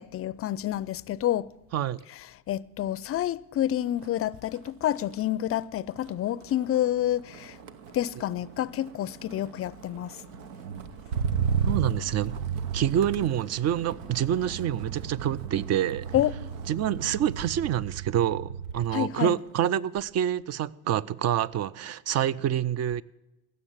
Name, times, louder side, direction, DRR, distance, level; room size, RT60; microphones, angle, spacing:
voice 1, 0.0-1.5 2.1-2.2 2.5-7.6 7.9-10.2 16.1-16.3 18.9-19.4, left 12 dB, 35° left, 0.5 m, -28 dB
Motor vehicle (road), 3.9-4.2 4.5-19.0 19.4-19.8, right 7 dB, 85° right, 0.9 m, -35 dB
voice 2, 11.7-12.3 12.7-16.1 16.7-23.0, right 10 dB, 40° right, 0.5 m, -27 dB
16.0 x 6.7 x 7.3 m
hypercardioid pair, 75°, 39 cm